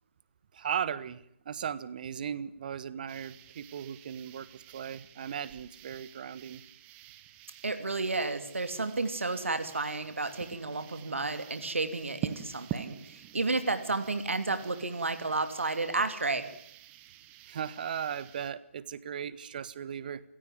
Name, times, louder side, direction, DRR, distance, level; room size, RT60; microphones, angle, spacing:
voice 1, 0.5-6.6 17.5-20.2, right 8 dB, 40° right, 18 dB, 1.3 m, -37 dB
sound 1, 3.1-18.5, right 12 dB, 20° right, 1.2 m, -47 dB
voice 2, 7.6-16.5, right 3 dB, 70° right, 9 dB, 2.8 m, -32 dB
28.5 x 17.0 x 9.3 m, 0.72 s
figure-of-eight pair, 140°, 7 cm